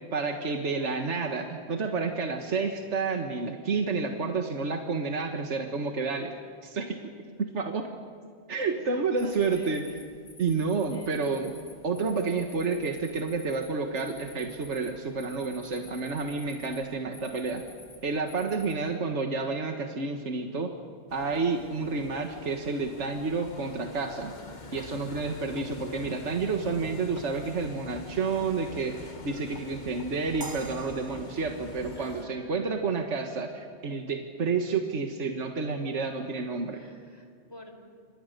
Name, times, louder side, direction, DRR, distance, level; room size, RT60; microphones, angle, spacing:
voice 1, 0.1-6.3 6.6-7.0 7.4-7.9 8.5-9.8 10.4-11.5 11.8-17.6 18.0-20.7 21.1-24.4 24.7-36.8, right 4 dB, 70° right, 4 dB, 1.8 m, -30 dB
voice 2, 0.8-1.3 8.6-10.0 10.9-11.2 32.0-32.6 36.7-37.8, equal, 20° left, 4 dB, 4.0 m, -50 dB
sound 1, 9.2-18.7, left 2 dB, 75° left, 4.7 m, -52 dB
sound 2, 21.1-32.3, left 3 dB, 40° left, 1.5 m, -45 dB
sound 3, 30.4-33.5, right 3 dB, 20° right, 1.0 m, -46 dB
28.5 x 26.5 x 6.7 m, 2.1 s
omnidirectional pair, 1.2 m